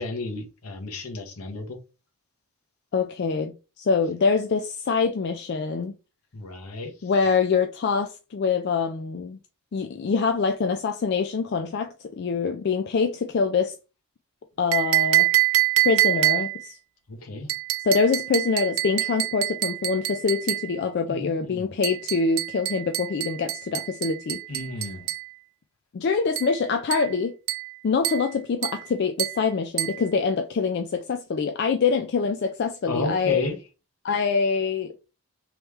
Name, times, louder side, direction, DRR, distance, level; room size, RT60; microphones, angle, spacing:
voice 1, 0.0-1.8 6.3-6.9 17.1-17.5 21.1-21.8 24.5-25.1 32.9-33.6, left 2 dB, 80° left, 1.0 m, -32 dB
voice 2, 2.9-6.0 7.0-9.4 9.7-13.8 14.6-15.3 15.8-16.8 17.8-24.4 25.9-27.3 27.8-33.4 34.0-34.9, left 5 dB, 50° left, 0.3 m, -25 dB
sound 1, 14.7-16.7 17.5-20.7 21.8-25.3 26.4-26.6 26.9-27.2 27.5-27.8 28.0-28.3 28.6-28.9 29.2-29.4 29.8-30.0, right 17 dB, 65° right, 0.4 m, -26 dB
3.1 x 3.1 x 3.5 m
head